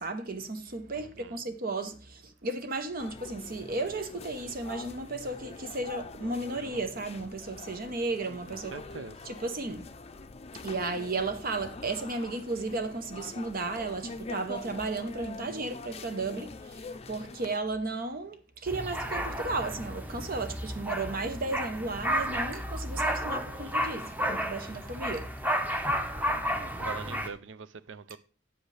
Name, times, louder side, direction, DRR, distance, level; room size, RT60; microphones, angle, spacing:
voice 1, 0.0-8.7 9.2-9.9 10.6-25.3, right 3 dB, 50° right, 0.9 m, -34 dB
voice 2, 0.9-1.4 8.5-9.3 23.6-24.1 26.6-28.2, right 5 dB, 75° right, 0.5 m, -44 dB
sound 1, 3.0-17.6, left 3 dB, 35° left, 0.5 m, -44 dB
sound 2, 18.7-27.3, equal, 10° right, 1.0 m, -32 dB
8.7 x 8.0 x 3.3 m
head